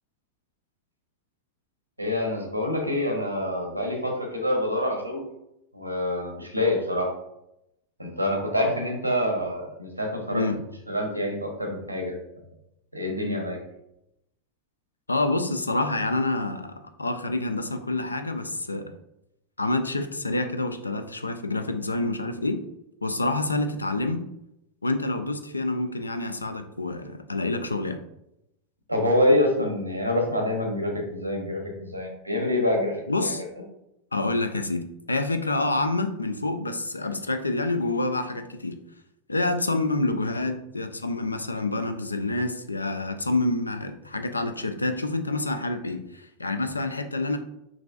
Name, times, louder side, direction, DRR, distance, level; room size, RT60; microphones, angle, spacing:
voice 1, 2.0-5.2 5.7-7.1 8.0-10.4 10.9-12.2 12.9-13.6 28.9-33.3, left 1 dB, 90° right, 1 dB, 0.9 m, -26 dB
voice 2, 15.1-18.9 19.6-22.6 23.0-24.3 24.8-28.0 33.1-33.4 34.1-38.8 39.3-47.4, left 2 dB, 80° left, 8 dB, 0.4 m, -27 dB
6.0 x 2.6 x 2.5 m, 0.84 s
figure-of-eight pair, 90°, 0 cm